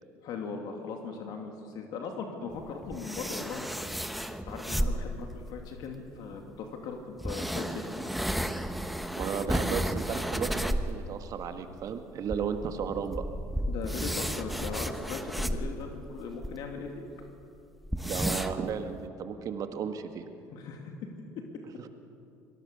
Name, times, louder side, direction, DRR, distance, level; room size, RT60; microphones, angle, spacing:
voice 1, 0.2-3.7 4.5-8.1 13.7-16.9 20.5-20.9, left 5 dB, 65° left, 3 dB, 2.6 m, -39 dB
sound 1, 2.5-5.3 6.3-6.4 7.2-11.0 11.3-11.4 11.8-11.9 12.3-16.5 17.0-17.1 17.3-17.4 17.8-18.7, equal, ahead, 1.1 m, -32 dB
voice 2, 9.2-13.2 18.0-20.3 21.8-21.9, right 7 dB, 55° right, 7 dB, 1.8 m, -34 dB
25.0 x 18.0 x 6.9 m, 2.6 s
supercardioid pair, 85°, 7 cm